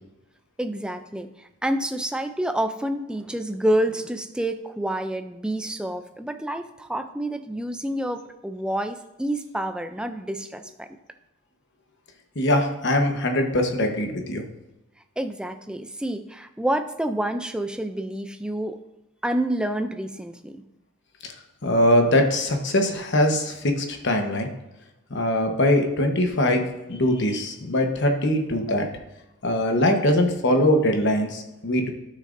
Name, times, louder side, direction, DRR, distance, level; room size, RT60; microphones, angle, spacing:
voice 1, 0.6-10.9 15.2-18.8 19.2-20.6, right 1 dB, 5° right, 8 dB, 0.4 m, -28 dB
voice 2, 12.4-14.4 21.6-24.5 25.1-26.6 26.9-28.8 29.4-31.9, left 1 dB, 55° left, 4 dB, 1.1 m, -22 dB
12.0 x 6.5 x 2.6 m, 0.93 s
head